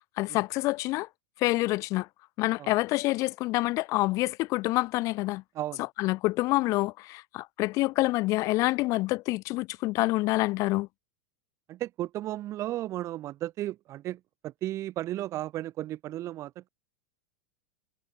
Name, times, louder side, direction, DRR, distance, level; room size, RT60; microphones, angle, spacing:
voice 1, 0.2-1.1 1.4-2.1 2.4-5.4 6.0-10.9, left 20 dB, 40° left, 1.2 m, -27 dB
voice 2, 5.5-5.9 11.7-16.7, right 14 dB, 35° right, 6.6 m, -34 dB
open air
figure-of-eight pair, 90°, 9 cm